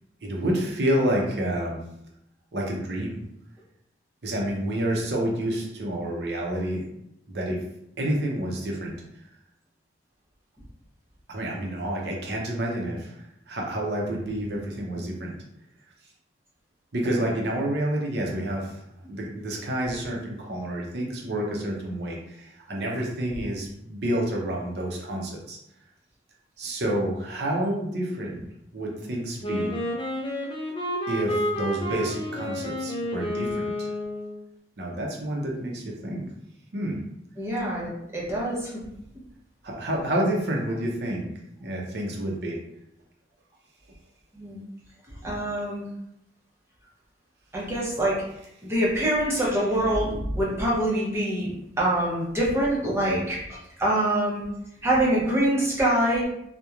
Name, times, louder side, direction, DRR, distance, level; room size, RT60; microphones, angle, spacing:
voice 1, 0.2-1.8 2.5-3.2 4.2-6.9 7.3-7.6 8.0-8.9 11.3-15.3 16.9-18.7 19.1-25.6 26.6-28.4 28.7-29.8 31.1-33.9 34.8-36.3 36.7-37.0 39.6-41.3 41.6-42.6, right 1 dB, 65° right, -1 dB, 0.6 m, -29 dB
Wind instrument woodwind instrument, 29.4-34.4, left 1 dB, 30° left, 0.4 m, -30 dB
voice 2, 37.4-38.7 44.3-44.6 45.2-45.9 47.5-48.2 48.6-51.5 51.8-54.4 54.8-56.3, right 1 dB, 15° right, -5 dB, 0.6 m, -25 dB
2.9 x 2.1 x 2.3 m, 0.79 s
head